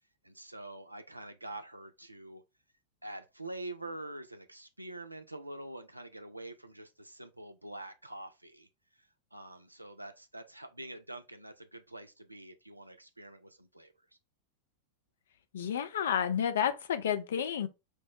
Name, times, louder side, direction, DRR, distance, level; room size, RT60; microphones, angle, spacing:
voice 1, 0.2-2.4 3.0-13.9, right 2 dB, 85° right, 0.3 m, -46 dB
voice 2, 15.5-17.7, left 8 dB, 60° left, 0.4 m, -30 dB
4.5 x 2.0 x 2.8 m
figure-of-eight pair, 90°, 0 cm